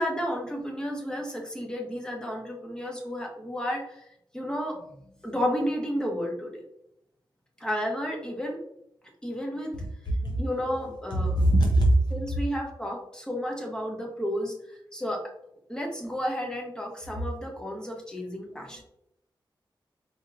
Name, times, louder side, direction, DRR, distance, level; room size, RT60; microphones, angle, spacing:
voice 1, 0.0-4.0 4.3-4.8 5.2-6.6 7.6-8.6 9.2-9.7 10.4-11.4 12.1-15.2 15.7-18.8, equal, 10° left, 0 dB, 0.8 m, -32 dB
voice 2, 10.2-10.6 11.1-12.2 18.5-18.8, right 1 dB, 60° left, -1 dB, 0.6 m, -23 dB
4.3 x 2.8 x 2.4 m, 0.77 s
wide cardioid pair, 110°, 8 cm